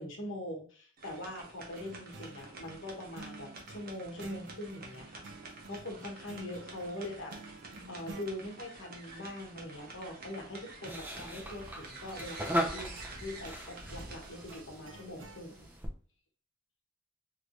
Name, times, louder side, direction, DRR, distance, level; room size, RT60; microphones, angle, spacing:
voice 1, 0.0-5.2 5.7-7.6 7.9-12.9 13.2-15.7, left 1 dB, 85° left, 1 dB, 1.0 m, -42 dB
sound 1, 1.0-15.8, right 2 dB, 50° right, 0.8 m, -49 dB
sound 2, 1.7-8.3 12.1-15.4, right 3 dB, 70° right, 0.5 m, -51 dB
sound 3, 10.8-15.9, equal, 10° right, 0.5 m, -38 dB
3.2 x 3.2 x 2.5 m, 0.42 s
head